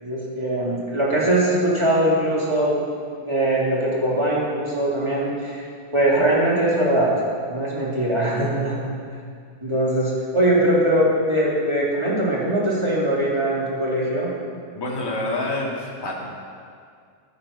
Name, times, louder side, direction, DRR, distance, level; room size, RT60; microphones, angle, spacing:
voice 1, 0.0-2.7 3.0-5.6 5.9-7.1 7.5-8.9 9.6-14.3, right 1 dB, 10° right, -6 dB, 2.9 m, -21 dB
voice 2, 14.7-16.2, left 2 dB, 10° left, -4 dB, 1.7 m, -27 dB
14.5 x 12.5 x 5.7 m, 2.2 s
omnidirectional pair, 4.0 m